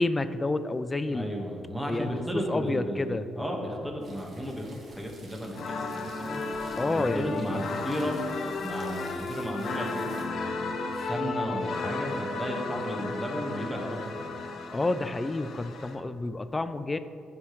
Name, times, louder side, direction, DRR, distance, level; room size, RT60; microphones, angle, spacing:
voice 1, 0.0-1.2 1.9-2.2 2.5-3.2 6.8-7.6 14.7-17.0, left 2 dB, 20° left, 12 dB, 0.3 m, -29 dB
voice 2, 1.1-6.4 6.9-8.2 8.6-10.7 11.0-14.2, equal, 5° right, -1 dB, 1.4 m, -34 dB
sound 1, 4.0-10.3, right 2 dB, 45° right, 1.4 m, -53 dB
sound 2, 5.5-16.0, left 3 dB, 65° left, 0.7 m, -34 dB
11.0 x 5.0 x 3.1 m, 2.7 s
cardioid pair, 90°, 0 cm